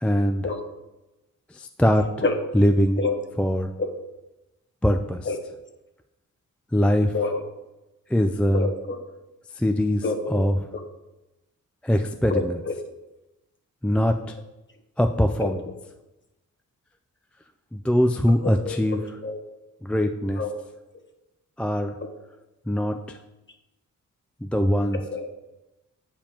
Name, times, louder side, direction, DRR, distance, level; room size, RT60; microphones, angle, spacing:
voice 1, 0.0-0.5 1.6-2.0 2.5-3.0 3.4-3.7 4.8-5.3 6.7-7.1 8.1-8.7 9.6-10.0 10.3-10.6 11.8-12.5 13.8-14.1 15.0-15.6 17.7-19.0 19.8-20.4 21.6-21.9 22.7-23.2 24.4-25.0, equal, 5° left, 5 dB, 0.3 m, -22 dB
voice 2, 8.5-9.0 10.0-10.4 10.7-10.8 12.3-12.8 15.4-15.5 18.3-19.4 20.4-20.5 22.0-22.1 24.9-25.3, left 3 dB, 35° left, 4 dB, 1.0 m, -28 dB
8.9 x 5.0 x 2.9 m, 1.0 s
cardioid pair, 65°, 32 cm